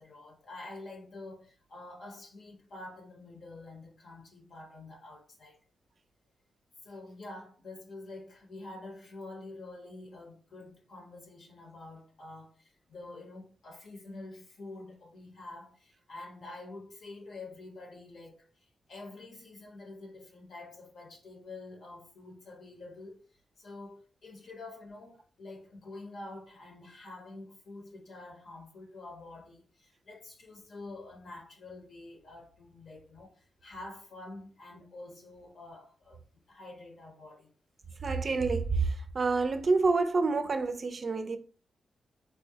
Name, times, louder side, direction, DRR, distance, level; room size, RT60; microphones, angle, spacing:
voice 1, 0.0-5.6 6.8-23.2 23.6-37.5, left 2 dB, 75° left, 0.8 m, -47 dB
voice 2, 38.0-41.4, right 4 dB, 50° right, 0.4 m, -28 dB
3.6 x 2.1 x 2.7 m
cardioid pair, 65°, 0 cm